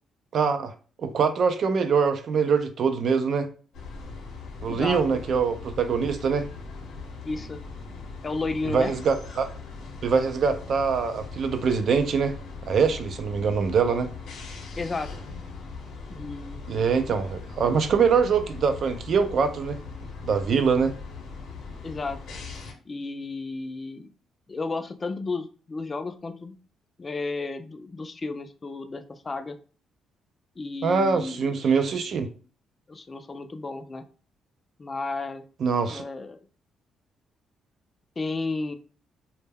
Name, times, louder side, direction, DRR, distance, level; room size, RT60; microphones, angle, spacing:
voice 1, 0.3-0.7 1.0-3.5 4.6-6.5 8.7-9.5 10.0-12.4 12.7-14.1 16.7-19.8 20.2-20.9 30.8-32.3 35.6-36.0, right 5 dB, 60° right, 0.4 m, -23 dB
sound 1, 3.7-22.7, left 4 dB, 75° left, 0.7 m, -40 dB
voice 2, 4.7-5.2 7.2-7.6 8.2-8.9 14.8-15.1 16.1-16.9 21.8-22.2 22.9-24.1 24.5-26.5 27.0-29.6 30.6-31.5 32.9-34.0 34.8-35.4 35.9-36.4 38.2-38.7, left 3 dB, 30° left, 0.3 m, -33 dB
2.1 x 2.1 x 3.3 m
cardioid pair, 90°, 0 cm